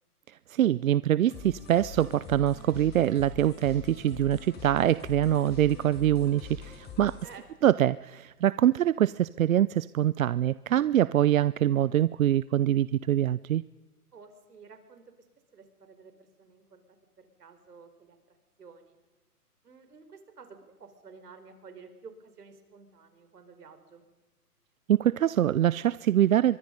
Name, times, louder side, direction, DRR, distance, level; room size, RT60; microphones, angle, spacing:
voice 1, 0.3-7.2 7.6-13.6 24.9-26.6, right 11 dB, 60° right, 19 dB, 0.6 m, -24 dB
sound 1, 1.3-7.4, left 6 dB, 20° left, 5.9 m, -44 dB
voice 2, 14.1-15.1 15.5-16.8 17.2-19.0 19.6-24.0, right 5 dB, 75° right, 8 dB, 4.8 m, -52 dB
25.0 x 23.5 x 5.4 m, 1.2 s
hypercardioid pair, 140°, 47 cm